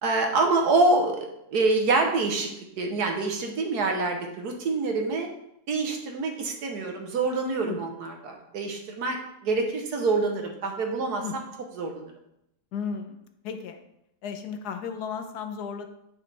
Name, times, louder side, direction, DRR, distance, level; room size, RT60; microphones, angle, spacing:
voice 1, 0.0-2.5 2.8-5.3 5.7-11.4 11.8-12.1, right 3 dB, 75° right, 3 dB, 1.6 m, -26 dB
voice 2, 12.7-13.1 13.4-13.8 14.2-15.9, left 6 dB, 80° left, 7 dB, 1.3 m, -34 dB
8.5 x 6.4 x 3.4 m, 0.80 s
omnidirectional pair, 1.7 m